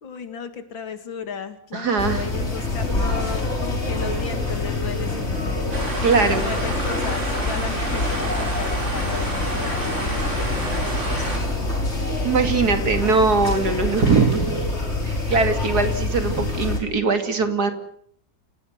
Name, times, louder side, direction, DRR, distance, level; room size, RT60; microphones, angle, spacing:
voice 1, 0.0-5.7 6.1-11.3, left 6 dB, 90° left, 9 dB, 3.0 m, -35 dB
voice 2, 1.7-2.3 6.0-6.4 12.2-14.6 15.0-17.7, right 4 dB, 55° right, 8 dB, 3.0 m, -21 dB
sound 1, 2.0-16.8, left 2 dB, 35° left, 5.5 m, -26 dB
sound 2, 5.7-11.4, right 1 dB, 35° right, 7.0 m, -30 dB
28.5 x 16.0 x 8.1 m, 0.66 s
omnidirectional pair, 2.0 m